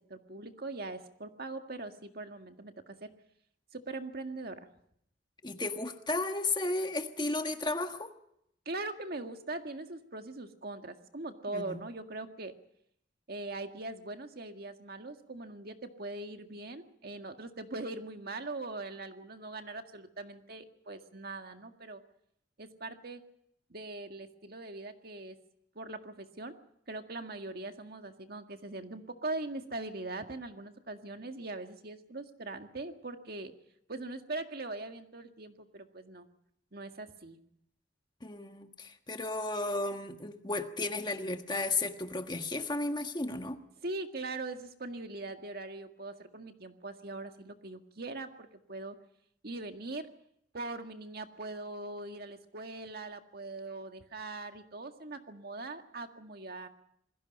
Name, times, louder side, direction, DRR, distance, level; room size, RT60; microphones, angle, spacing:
voice 1, 0.1-3.1 3.7-4.7 8.7-12.5 13.3-22.0 22.6-23.2 23.7-25.4 25.8-26.6 26.9-33.5 33.9-36.3 36.7-37.4 43.8-49.0 49.4-50.1 50.5-56.7, right 2 dB, 55° right, 6 dB, 1.9 m, -41 dB
voice 2, 5.4-8.1 11.5-11.8 38.2-43.6, left 2 dB, 25° left, 6 dB, 1.4 m, -34 dB
27.5 x 21.0 x 5.4 m, 0.75 s
head